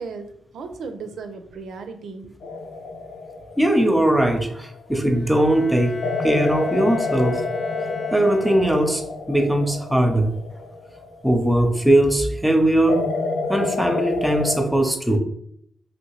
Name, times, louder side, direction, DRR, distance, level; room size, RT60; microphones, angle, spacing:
voice 1, 0.0-2.5, right 4 dB, 80° right, 7 dB, 0.4 m, -36 dB
sound 1, 2.4-5.1 6.0-11.8 12.9-14.7, left 3 dB, 75° left, 0.4 m, -29 dB
voice 2, 3.6-6.0 6.2-7.4 8.1-9.0 9.3-10.3 11.2-13.1 13.5-15.2, right 1 dB, 10° right, 5 dB, 0.6 m, -19 dB
Bowed string instrument, 5.1-9.2, left 4 dB, 50° left, 0.9 m, -37 dB
2.9 x 2.7 x 3.0 m, 0.69 s
supercardioid pair, 50°, 0 cm